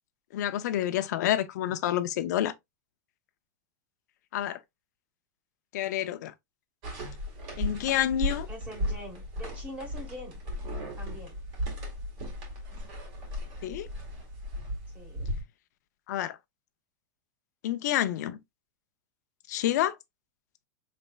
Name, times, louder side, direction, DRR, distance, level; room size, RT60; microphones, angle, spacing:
voice 1, 0.3-2.5 4.3-4.6 5.7-6.3 7.6-8.5 13.6-13.9 16.1-16.4 17.6-18.4 19.5-20.0, left 12 dB, 65° left, 0.5 m, -28 dB
sound 1, 6.8-15.4, equal, 40° right, 1.7 m, -36 dB
voice 2, 8.5-10.4 11.0-11.3 14.9-15.3, equal, 10° right, 1.3 m, -43 dB
4.2 x 3.3 x 2.3 m
supercardioid pair, 170°, 10 cm